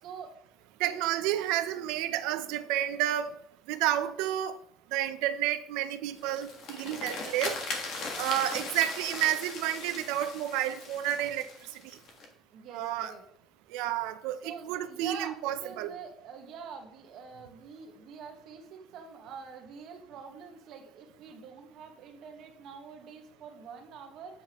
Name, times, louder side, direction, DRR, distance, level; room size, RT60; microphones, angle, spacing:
voice 1, 0.0-0.4 0.8-1.0 12.5-13.2 14.4-24.4, right 6 dB, 45° right, 3 dB, 1.3 m, -45 dB
voice 2, 0.8-3.3 3.7-4.6 4.9-7.5 8.2-11.4 12.7-13.1 13.7-15.9, right 12 dB, 85° right, 10 dB, 0.6 m, -30 dB
sound 1, 6.2-12.3, left 3 dB, 45° left, 1.4 m, -39 dB
7.7 x 6.9 x 3.0 m, 0.72 s
cardioid pair, 180°, 0 cm